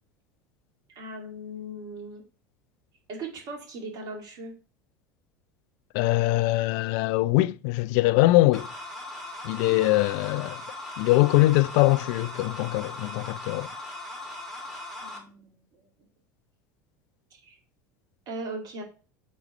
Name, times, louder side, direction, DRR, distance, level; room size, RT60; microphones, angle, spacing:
voice 1, 1.0-2.2 3.1-4.5 9.7-10.2 15.0-15.9 17.4-17.6 18.3-18.8, right 2 dB, 40° right, 2.5 m, -39 dB
voice 2, 5.9-8.7 9.4-10.6 11.0-13.7, left 18 dB, 55° left, 0.3 m, -22 dB
sound 1, 8.5-15.2, left 2 dB, ahead, 2.6 m, -39 dB
8.3 x 4.7 x 3.2 m
figure-of-eight pair, 75°, 10 cm